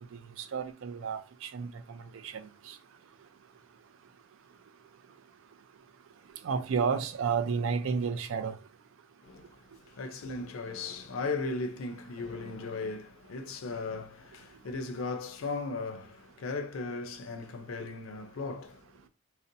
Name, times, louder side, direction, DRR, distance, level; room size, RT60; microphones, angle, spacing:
voice 1, 0.1-2.8 6.4-8.6, right 6 dB, 75° right, 0.3 m, -32 dB
voice 2, 9.2-9.6 9.9-19.0, left 3 dB, 85° left, 0.4 m, -37 dB
2.5 x 2.1 x 2.6 m
head